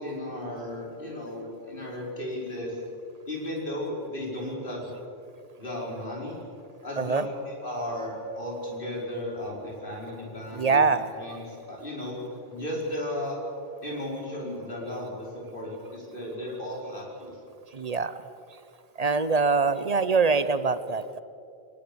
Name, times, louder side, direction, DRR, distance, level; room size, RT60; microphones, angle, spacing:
voice 1, 0.0-2.8 3.3-5.0 5.6-6.4 6.8-10.9 11.1-12.2 12.5-13.4 13.8-17.3, left 1 dB, 55° left, -2 dB, 5.3 m, -35 dB
voice 2, 10.5-11.1 17.7-18.2 19.0-21.2, right 4 dB, 40° right, 14 dB, 0.8 m, -24 dB
23.0 x 19.5 x 7.0 m, 2.6 s
omnidirectional pair, 1.1 m